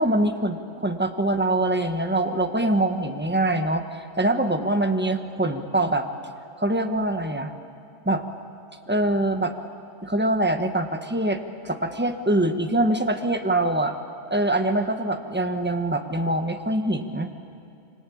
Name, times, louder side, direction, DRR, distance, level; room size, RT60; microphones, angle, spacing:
voice 1, 0.0-6.1 6.6-7.5 8.0-8.2 8.9-9.5 10.0-13.9 14.3-17.3, right 1 dB, 10° right, 6 dB, 1.3 m, -24 dB
26.5 x 25.0 x 8.6 m, 2.6 s
omnidirectional pair, 1.3 m